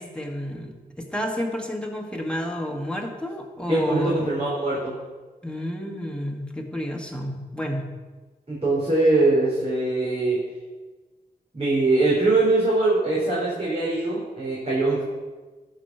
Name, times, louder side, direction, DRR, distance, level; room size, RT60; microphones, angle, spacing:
voice 1, 0.0-4.3 5.4-7.9, equal, 5° left, 1 dB, 2.0 m, -30 dB
voice 2, 3.7-5.0 8.5-10.4 11.5-15.0, right 2 dB, 40° right, -6 dB, 3.8 m, -22 dB
12.5 x 5.1 x 6.1 m, 1.3 s
cardioid pair, 50°, 17 cm